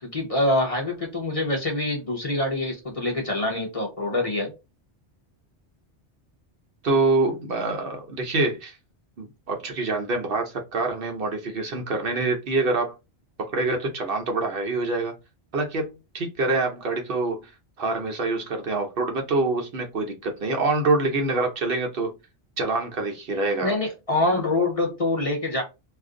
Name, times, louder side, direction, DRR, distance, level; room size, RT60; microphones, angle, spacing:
voice 1, 0.0-4.5 23.6-25.6, left 2 dB, 35° left, 0.8 m, -25 dB
voice 2, 6.8-8.7 9.2-12.9 13.4-15.1 15.5-17.4 17.8-22.1 22.6-23.8, right 3 dB, 60° right, 0.9 m, -25 dB
2.5 x 2.4 x 3.6 m
omnidirectional pair, 1.1 m